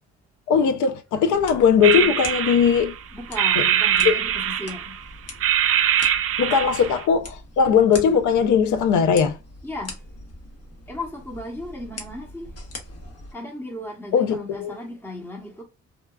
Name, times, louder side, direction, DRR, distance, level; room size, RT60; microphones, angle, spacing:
voice 1, 0.5-2.9 4.0-4.2 6.4-9.4 14.1-14.8, left 7 dB, 75° left, 0.5 m, -19 dB
sound 1, 1.3-13.3, left 2 dB, 55° left, 1.1 m, -42 dB
sound 2, 1.8-3.0 3.4-5.0 5.4-7.0, right 10 dB, 50° right, 0.4 m, -22 dB
voice 2, 3.1-5.0 9.6-10.0 10.9-12.5 13.3-15.6, left 1 dB, 10° left, 0.9 m, -35 dB
2.8 x 2.2 x 2.3 m
cardioid pair, 90°, 30 cm